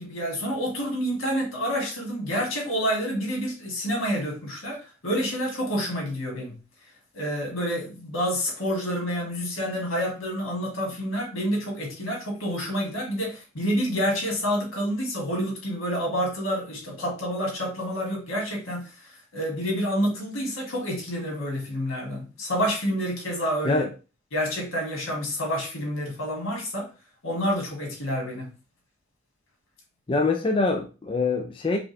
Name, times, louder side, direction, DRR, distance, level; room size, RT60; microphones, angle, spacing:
voice 1, 0.0-6.6 7.1-23.8 24.3-26.9 27.2-28.5, equal, 85° left, 2.0 m, -28 dB
voice 2, 30.1-31.8, left 3 dB, 25° left, 0.4 m, -24 dB
5.0 x 2.5 x 3.3 m
head